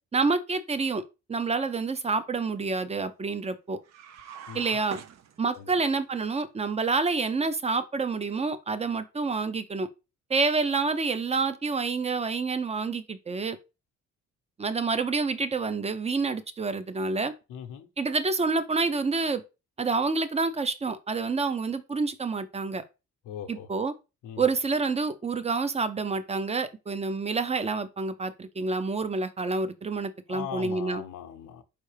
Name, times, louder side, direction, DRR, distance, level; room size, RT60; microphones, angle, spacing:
voice 1, 0.1-1.0 1.3-3.8 4.5-5.0 5.4-9.9 10.3-13.6 14.6-17.3 18.0-19.4 19.8-22.8 23.5-23.9 24.4-31.0, right 4 dB, 20° right, 0.5 m, -28 dB
sound 1, 3.8-5.9, right 8 dB, 60° right, 0.6 m, -45 dB
voice 2, 4.5-4.8 5.5-5.7 17.5-17.9 23.2-23.7 24.2-24.5 30.3-31.6, left 9 dB, 85° left, 0.8 m, -39 dB
4.5 x 3.4 x 3.3 m
cardioid pair, 90°, 30 cm